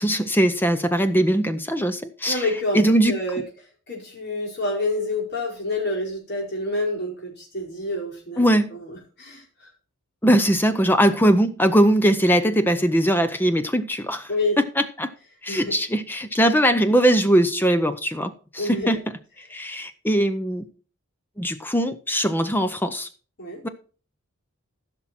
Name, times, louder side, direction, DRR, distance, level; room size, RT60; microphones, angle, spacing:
voice 1, 0.0-2.5 2.7-3.1 8.4-8.7 10.2-14.3 14.6-15.1 15.4-19.0 19.5-20.6 21.4-23.1 23.6-23.7, equal, 10° left, 0.6 m, -20 dB
voice 2, 2.3-3.4 3.9-9.7 14.3-14.6 15.5-15.8 18.6-19.0 23.4-23.6, left 2 dB, 45° left, 4.4 m, -28 dB
15.0 x 6.0 x 4.3 m
head